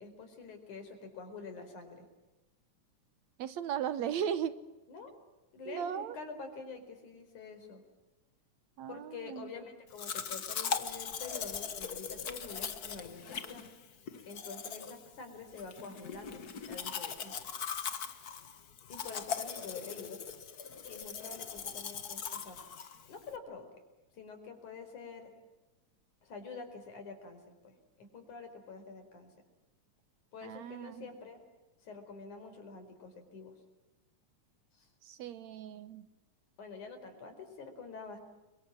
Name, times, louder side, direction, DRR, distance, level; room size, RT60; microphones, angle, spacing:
voice 1, 0.0-2.1 4.9-5.1 5.5-7.8 8.9-13.7 14.3-17.4 18.9-20.2 20.9-22.6 23.1-23.8 24.1-25.3 26.2-29.3 30.3-31.4 31.8-33.6 34.7-34.9 36.6-38.2, left 4 dB, 75° left, 7 dB, 6.0 m, -47 dB
voice 2, 3.4-4.5 5.7-6.2 8.8-9.5 30.4-31.1 35.0-36.1, right 9 dB, 70° right, 13 dB, 2.2 m, -37 dB
Domestic sounds home sounds, 10.0-23.4, left 6 dB, 45° left, 1.3 m, -40 dB
30.0 x 24.5 x 7.5 m, 1.1 s
omnidirectional pair, 3.5 m